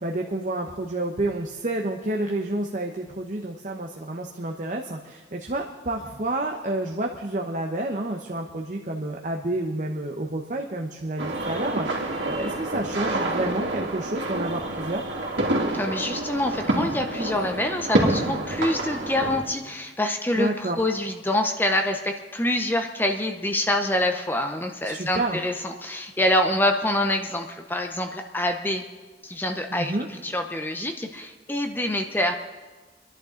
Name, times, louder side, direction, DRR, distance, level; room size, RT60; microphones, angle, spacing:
voice 1, 0.0-15.0 20.4-20.8 24.8-25.4 29.7-30.1, right 1 dB, 45° right, 2 dB, 0.9 m, -29 dB
sound 1, 11.2-19.4, right 1 dB, 85° right, 2.7 m, -27 dB
voice 2, 15.7-28.9 29.2-32.3, left 1 dB, 10° left, 5 dB, 0.7 m, -26 dB
27.0 x 11.0 x 3.8 m, 1.3 s
head